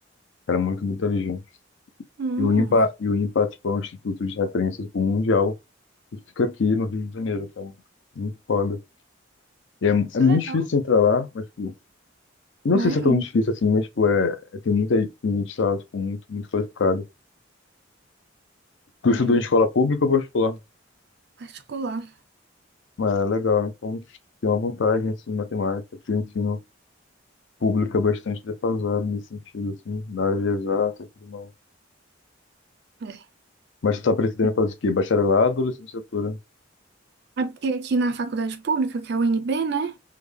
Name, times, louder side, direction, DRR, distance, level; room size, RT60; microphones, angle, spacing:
voice 1, 0.5-1.4 2.4-5.5 6.4-7.7 8.2-8.8 9.8-11.7 12.6-14.4 14.6-17.0 19.0-20.6 23.0-24.0 24.4-25.8 26.1-26.6 27.6-31.5 33.8-36.4, left 4 dB, 65° left, 0.5 m, -23 dB
voice 2, 2.2-2.8 10.2-10.6 12.7-13.2 19.1-19.4 21.4-22.1 33.0-33.2 37.4-39.9, right 3 dB, 55° right, 0.4 m, -27 dB
3.6 x 2.2 x 3.2 m
head